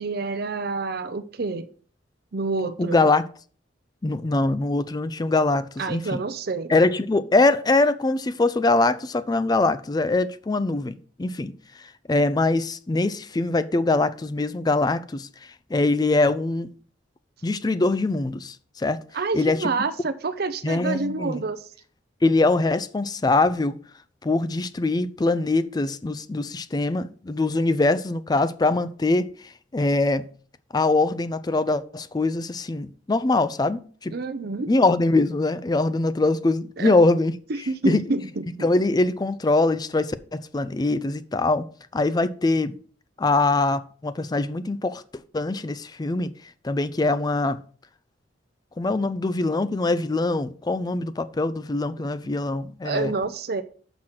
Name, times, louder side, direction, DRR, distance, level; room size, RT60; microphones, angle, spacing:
voice 1, 0.0-1.7 2.3-3.0 5.8-6.7 19.1-21.6 34.1-34.7 36.8-37.0 37.5-38.4 52.0-52.1 52.8-53.6, right 3 dB, 55° right, 0.6 m, -28 dB
voice 2, 2.8-3.2 4.0-6.2 6.7-11.5 12.1-15.3 15.7-16.7 17.4-19.0 19.3-19.7 20.6-21.4 22.2-23.8 24.2-30.3 30.7-34.1 34.7-37.3 37.9-38.0 38.6-41.7 41.9-42.8 43.2-45.0 45.3-46.3 46.6-47.6 48.8-53.1, left 2 dB, 20° left, 0.4 m, -23 dB
6.3 x 6.0 x 5.8 m
head